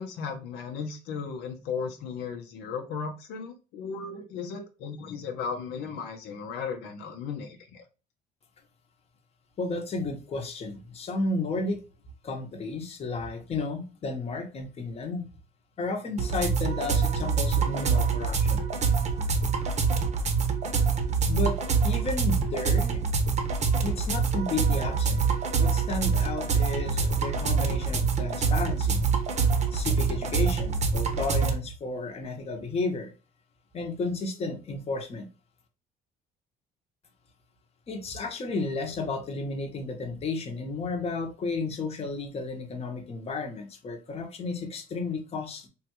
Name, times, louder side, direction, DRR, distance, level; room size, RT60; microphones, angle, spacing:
voice 1, 0.0-7.8, left 5 dB, 85° left, 2 dB, 0.7 m, -36 dB
voice 2, 9.6-11.8 12.2-15.2 15.8-18.6 21.3-21.6 21.8-23.0 23.8-25.2 25.6-29.0 29.7-33.1 33.7-35.3 37.9-45.7, left 3 dB, 35° left, 4 dB, 0.8 m, -32 dB
sound 1, 16.2-31.5, right 5 dB, 40° right, 0.7 m, -25 dB
3.5 x 2.3 x 2.9 m, 0.32 s
cardioid pair, 110°, 17 cm